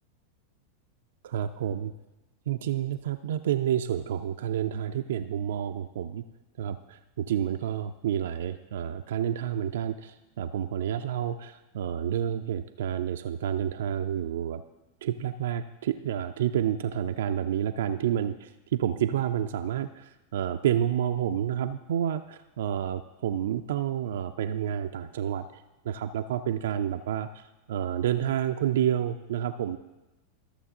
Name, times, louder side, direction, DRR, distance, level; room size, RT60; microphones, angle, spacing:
voice 1, 1.2-1.9 2.5-6.2 6.6-14.6 15.0-25.5 25.9-27.3 27.7-29.8, right 10 dB, 60° right, 7 dB, 0.4 m, -29 dB
13.0 x 7.0 x 3.7 m, 1.0 s
figure-of-eight pair, 90°, 0 cm